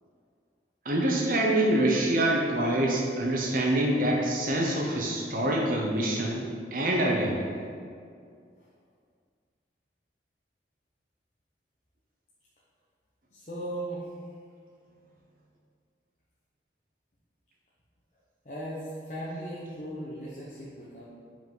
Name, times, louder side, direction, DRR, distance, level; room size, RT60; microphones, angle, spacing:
voice 1, 0.8-7.5, right 1 dB, 50° right, -1 dB, 0.8 m, -26 dB
voice 2, 13.3-14.1 18.4-21.0, right 1 dB, 40° left, -7 dB, 1.0 m, -37 dB
5.7 x 5.2 x 5.5 m, 2.2 s
head